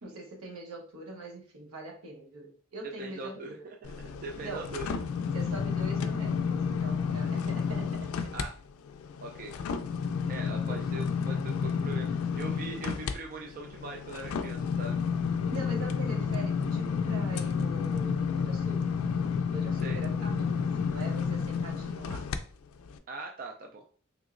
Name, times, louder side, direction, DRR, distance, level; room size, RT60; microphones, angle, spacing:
voice 1, 0.0-3.7 4.4-4.7 5.3-8.3 10.7-10.8 15.5-18.9 19.5-22.3, right 2 dB, 80° right, 0 dB, 1.0 m, -43 dB
voice 2, 3.0-3.6 3.8-3.9 4.2-4.9 8.3-8.5 9.2-9.6 10.3-15.0 19.8-20.0 23.1-23.8, right 3 dB, 40° right, 1 dB, 0.4 m, -41 dB
sound 1, 3.8-8.5 8.9-22.4 22.9-23.0, left 6 dB, 75° left, 0.3 m, -31 dB
3.4 x 3.0 x 2.5 m, 0.43 s
head